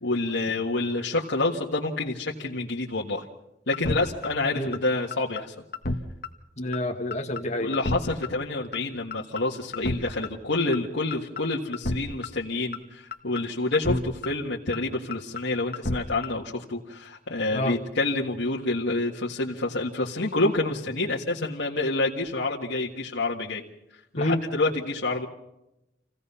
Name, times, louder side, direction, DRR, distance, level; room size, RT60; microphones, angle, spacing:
voice 1, 0.0-3.2 3.7-5.5 7.6-23.6 24.1-25.3, left 2 dB, 80° left, -3 dB, 1.7 m, -28 dB
sound 1, 3.7-4.0 4.2-4.3 4.7-4.8 5.1-5.4 5.7-6.0 6.2-6.3 6.7-6.8 7.1-7.4 7.7-8.0 8.2-8.3 8.7-8.8 9.1-9.4 9.7-10.0 10.2-10.3 10.7-10.8 11.1-11.4 11.7-12.0 12.2-12.3 12.7-12.8 13.1-13.4 13.7-14.0 14.2-14.3 14.7-14.8 15.1-15.4 15.7-16.0 16.2-16.3, left 2 dB, 55° left, 1.4 m, -30 dB
voice 2, 6.6-7.7 13.9-14.0 17.5-17.8 24.2-24.4, left 1 dB, 35° left, 3 dB, 1.9 m, -28 dB
28.0 x 16.5 x 5.6 m, 0.89 s
head